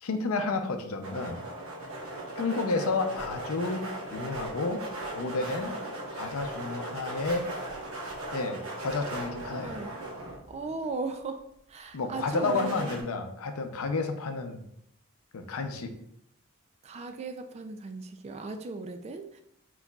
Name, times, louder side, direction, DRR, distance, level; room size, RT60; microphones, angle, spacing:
voice 1, 0.0-1.4 2.4-3.8 4.1-4.8 5.1-5.7 6.1-7.4 8.3-9.8 11.9-14.6 15.3-15.9, left 3 dB, 80° left, 6 dB, 0.5 m, -31 dB
sound 1, 1.0-10.9 12.1-13.0, right 1 dB, 85° right, 1.1 m, -38 dB
voice 2, 9.5-10.1 10.5-11.4 11.7-12.9 16.8-19.4, right 3 dB, 30° right, 7 dB, 0.3 m, -37 dB
4.5 x 4.0 x 2.3 m, 0.74 s
head